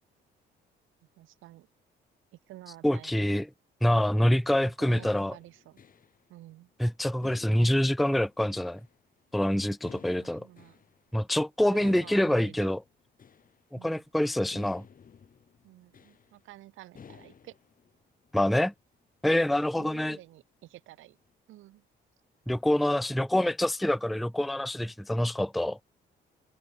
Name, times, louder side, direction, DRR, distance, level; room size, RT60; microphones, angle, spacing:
voice 1, 1.2-1.7 2.5-3.3 4.8-5.8 6.3-6.7 10.2-10.8 11.7-12.7 13.7-14.0 15.6-17.5 19.8-20.4 20.7-21.1 21.5-21.8, right 16 dB, 85° right, 0.8 m, -49 dB
voice 2, 2.8-3.5 3.8-5.4 6.8-8.8 9.3-10.5 11.1-12.8 13.7-14.8 18.3-18.7 19.2-20.2 22.5-25.8, left 1 dB, ahead, 0.4 m, -26 dB
sound 1, 4.4-6.2 6.5-6.6 7.2-9.2 9.8-11.1 11.6-13.6 13.9-14.0 14.3-16.5 16.9-18.0 18.2-18.4 18.8-18.9 19.3-20.3, left 7 dB, 45° left, 2.2 m, -53 dB
cardioid pair, 90°, 20 cm